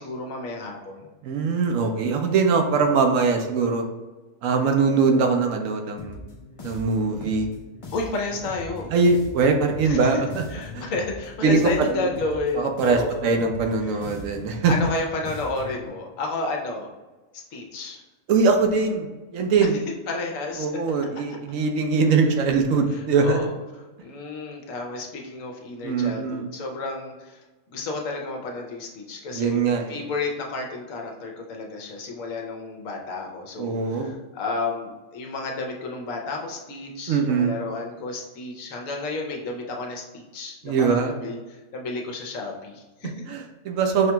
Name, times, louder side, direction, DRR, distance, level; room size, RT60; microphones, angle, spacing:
voice 1, 0.0-1.1 7.9-8.9 9.8-10.0 10.5-13.3 13.8-14.0 14.7-16.9 17.3-18.0 20.1-20.7 22.9-23.5 24.0-29.6 29.9-43.1, left 3 dB, 75° left, 1 dB, 1.1 m, -31 dB
voice 2, 1.2-3.8 4.4-6.2 6.6-7.5 8.9-10.4 10.7-10.9 11.4-12.1 12.5-14.7 18.3-19.1 19.3-19.8 20.6-23.4 25.8-26.5 29.3-30.0 33.6-34.2 37.1-37.5 40.6-41.1 43.3-44.1, right 4 dB, 80° right, 4 dB, 1.0 m, -22 dB
sound 1, 6.0-15.9, left 2 dB, 60° left, 0.3 m, -40 dB
5.6 x 2.9 x 2.2 m, 1.2 s
omnidirectional pair, 1.4 m